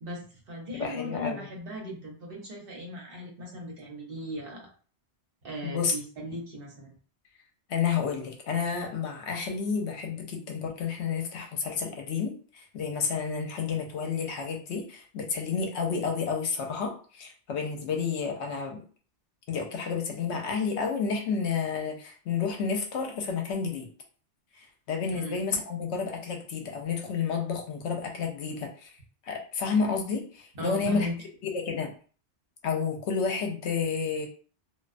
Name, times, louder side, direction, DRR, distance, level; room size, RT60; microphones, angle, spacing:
voice 1, 0.0-4.7 5.4-6.9 25.1-25.3 30.5-31.2, left 1 dB, 55° right, -2 dB, 1.0 m, -37 dB
voice 2, 0.7-1.5 5.6-5.9 7.7-18.8 19.5-23.9 24.6-28.9 29.2-31.1 31.5-31.9 32.6-34.3, left 5 dB, 80° left, 2 dB, 0.9 m, -30 dB
2.4 x 2.2 x 2.4 m, 0.40 s
omnidirectional pair, 1.2 m